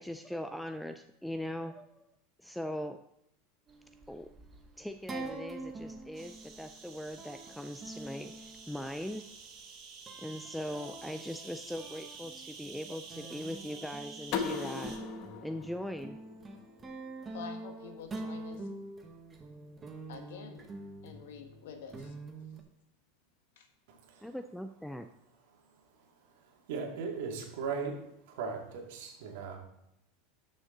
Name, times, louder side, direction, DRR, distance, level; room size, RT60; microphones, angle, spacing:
voice 1, 0.0-2.1 2.4-3.0 4.1-4.3 4.8-9.3 10.2-15.0 15.4-16.2 24.2-25.1, equal, ahead, 8 dB, 0.3 m, -40 dB
sound 1, 3.7-9.7 10.1-22.6, right 2 dB, 15° right, 1.1 m, -46 dB
sound 2, 6.1-15.0, right 5 dB, 35° right, 1.8 m, -50 dB
sound 3, 14.3-17.1, left 6 dB, 40° left, 1.0 m, -39 dB
voice 2, 17.3-18.7 20.1-20.7 21.0-22.2 23.5-23.7, left 6 dB, 80° left, 6 dB, 1.5 m, -47 dB
voice 3, 23.9-24.3 26.7-28.0 28.3-29.6, right 5 dB, 65° right, 1 dB, 2.3 m, -37 dB
12.5 x 6.4 x 3.9 m, 0.81 s
supercardioid pair, 160°, 0 cm